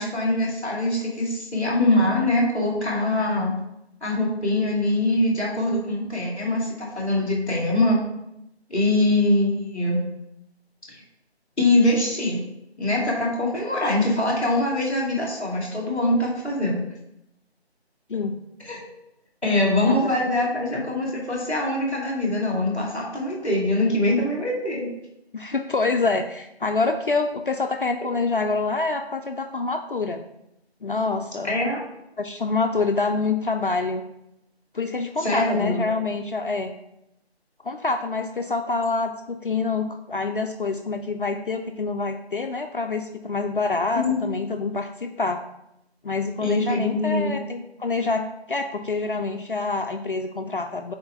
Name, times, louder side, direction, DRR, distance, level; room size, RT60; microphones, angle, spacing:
voice 1, 0.0-3.5 4.0-8.0 8.7-10.0 11.6-12.4 12.8-16.8 18.6-18.8 19.4-24.9 31.4-31.8 35.2-35.9 44.0-44.1 46.4-47.3, left 1 dB, ahead, -18 dB, 1.1 m, -23 dB
voice 2, 25.3-30.2 30.8-31.5 32.2-34.0 34.7-36.7 37.6-45.4 46.0-50.9, left 3 dB, 55° left, 5 dB, 0.5 m, -26 dB
4.3 x 4.3 x 5.7 m, 0.83 s
figure-of-eight pair, 160°, 33 cm